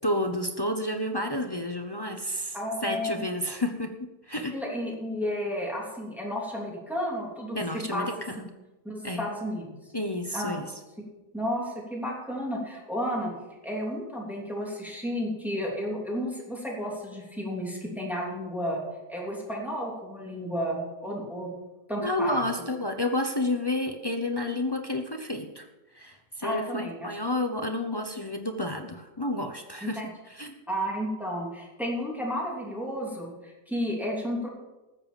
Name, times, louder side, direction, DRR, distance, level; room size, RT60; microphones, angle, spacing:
voice 1, 0.0-2.6 2.8-4.6 7.5-8.5 9.0-9.3 9.9-10.7 22.0-25.7 25.9-30.5, left 1 dB, 35° left, 4 dB, 0.4 m, -30 dB
voice 2, 2.5-3.2 4.5-8.1 8.8-9.7 10.3-10.6 11.3-13.3 13.6-18.8 19.1-21.5 21.9-22.4 26.4-27.2 29.8-30.1 30.7-34.5, equal, ahead, -3 dB, 3.1 m, -32 dB
14.0 x 7.7 x 7.1 m, 1.1 s
omnidirectional pair, 1.9 m